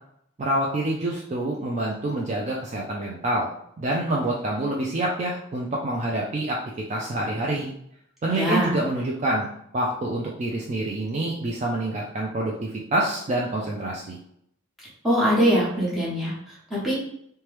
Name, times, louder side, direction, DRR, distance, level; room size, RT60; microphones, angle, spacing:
voice 1, 0.4-3.5 3.8-6.6 6.9-7.7 8.2-9.5 9.7-14.2, right 1 dB, 35° right, -2 dB, 0.3 m, -27 dB
voice 2, 8.3-8.8 15.0-16.9, equal, ahead, -8 dB, 1.0 m, -23 dB
2.9 x 2.2 x 3.2 m, 0.71 s
head